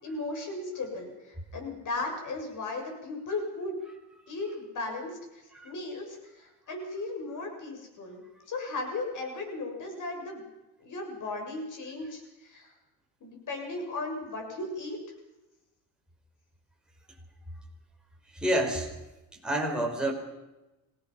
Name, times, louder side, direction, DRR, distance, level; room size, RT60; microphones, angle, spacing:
voice 1, 0.0-3.8 4.3-8.2 8.5-10.4 10.8-12.7 13.2-15.0, left 2 dB, 45° left, 2 dB, 7.2 m, -36 dB
voice 2, 18.3-18.9 19.4-20.1, right 1 dB, ahead, -1 dB, 5.7 m, -28 dB
26.5 x 18.5 x 5.8 m, 1.0 s
cardioid pair, 115°, 43 cm